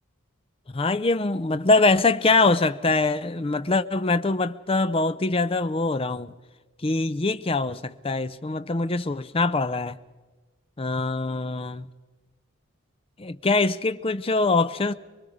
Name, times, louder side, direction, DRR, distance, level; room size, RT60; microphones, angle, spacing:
voice 1, 0.7-6.3 6.8-10.0 10.8-11.9 13.2-14.9, left 3 dB, 25° left, 0.6 m, -23 dB
24.0 x 23.5 x 5.0 m
head